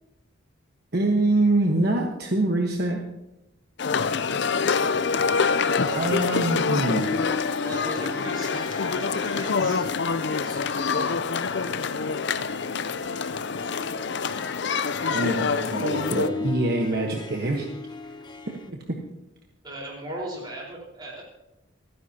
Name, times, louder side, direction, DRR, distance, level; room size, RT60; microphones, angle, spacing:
voice 1, 0.9-3.0 5.9-7.1 15.1-17.7 18.7-18.8, right 2 dB, 50° right, 1 dB, 1.2 m, -24 dB
sound 1, 3.8-16.3, left 5 dB, 55° left, 0.5 m, -26 dB
Harp, 4.7-18.7, left 3 dB, 20° left, 0.8 m, -38 dB
voice 2, 7.4-9.9 10.1-10.6 19.6-21.2, right 1 dB, 20° right, -3 dB, 4.4 m, -38 dB
27.0 x 9.9 x 2.9 m, 0.94 s
head